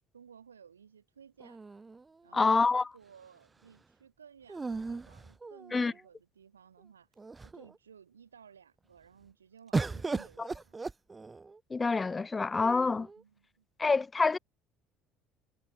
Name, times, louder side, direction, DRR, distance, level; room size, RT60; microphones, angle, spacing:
voice 1, 0.1-1.6 2.2-10.8 13.2-13.6, right 7 dB, 90° right, 3.1 m, -57 dB
sound 1, 1.4-2.5 4.5-6.0 6.8-6.9 7.2-7.8 9.7-11.6 12.5-13.2, right 3 dB, 20° right, 1.6 m, -37 dB
voice 2, 2.3-2.9 5.7-5.9 10.4-10.5 11.7-13.1 13.8-14.4, left 4 dB, 25° left, 0.4 m, -27 dB
hypercardioid pair, 60°, 0 cm